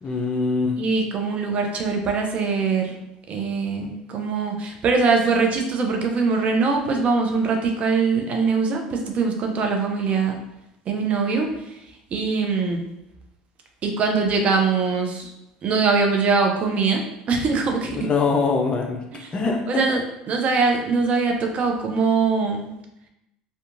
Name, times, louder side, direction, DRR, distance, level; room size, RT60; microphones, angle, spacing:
voice 1, 0.0-0.8 17.9-19.0 19.3-20.0, left 4 dB, 30° left, 2 dB, 0.5 m, -23 dB
voice 2, 0.8-3.0 3.3-10.4 10.9-11.5 12.1-12.8 13.8-15.3 15.6-18.1 19.2-19.3 19.7-20.0 20.3-22.7, right 4 dB, 45° right, 2 dB, 0.5 m, -22 dB
2.7 x 2.3 x 2.5 m, 0.86 s
hypercardioid pair, 80°, 3 cm